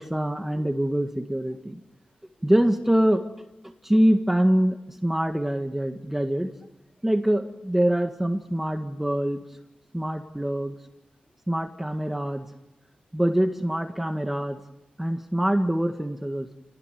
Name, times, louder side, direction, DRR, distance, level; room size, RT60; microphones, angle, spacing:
voice 1, 0.0-1.8 2.4-3.2 3.8-6.5 7.0-9.4 9.9-10.7 11.5-12.5 13.1-14.6 15.0-16.5, right 1 dB, 10° right, 5 dB, 1.9 m, -24 dB
29.5 x 18.5 x 9.4 m, 0.90 s
wide cardioid pair, 110°, 3 cm